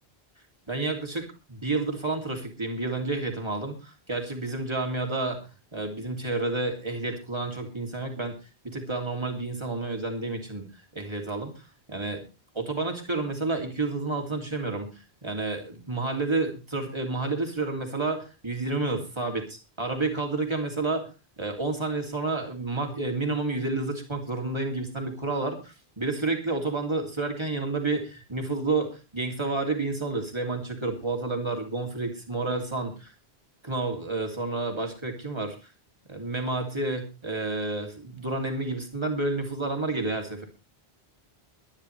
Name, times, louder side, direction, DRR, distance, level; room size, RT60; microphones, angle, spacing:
voice 1, 0.7-5.4 5.7-8.3 8.6-12.2 12.5-14.9 15.2-21.0 21.4-33.1 33.6-35.6 36.1-40.4, right 3 dB, 25° right, 3 dB, 3.0 m, -30 dB
22.5 x 10.5 x 3.3 m, 0.30 s
omnidirectional pair, 1.1 m